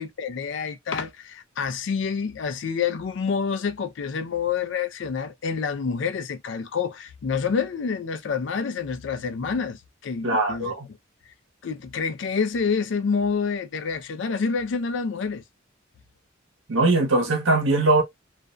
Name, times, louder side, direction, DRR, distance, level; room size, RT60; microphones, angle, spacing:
voice 1, 0.0-10.7 11.6-15.4, left 5 dB, 65° left, 0.4 m, -28 dB
voice 2, 10.2-10.9 16.7-18.0, right 2 dB, 80° right, 0.9 m, -21 dB
2.4 x 2.1 x 2.4 m
head